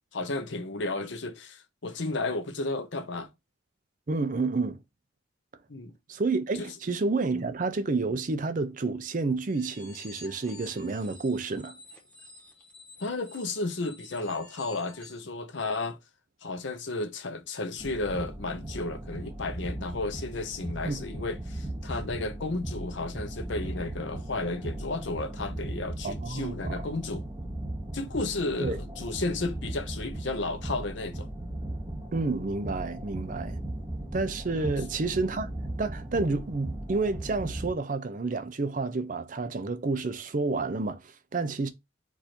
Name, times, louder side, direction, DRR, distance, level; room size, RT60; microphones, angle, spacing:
voice 1, 0.1-3.3 5.7-5.9 6.6-6.7 7.3-7.5 13.0-16.0 16.4-27.3 27.9-31.3 34.5-34.7, left 2 dB, 65° left, 0.8 m, -33 dB
voice 2, 4.1-4.8 6.1-11.8 20.8-21.0 26.0-26.8 28.6-28.8 32.1-33.6 34.1-35.5 35.8-41.7, right 3 dB, 40° right, 0.5 m, -30 dB
sound 1, 9.5-15.3, left 2 dB, 5° left, 1.2 m, -50 dB
sound 2, 17.8-37.7, right 1 dB, 20° right, 1.0 m, -37 dB
4.7 x 2.6 x 4.3 m
head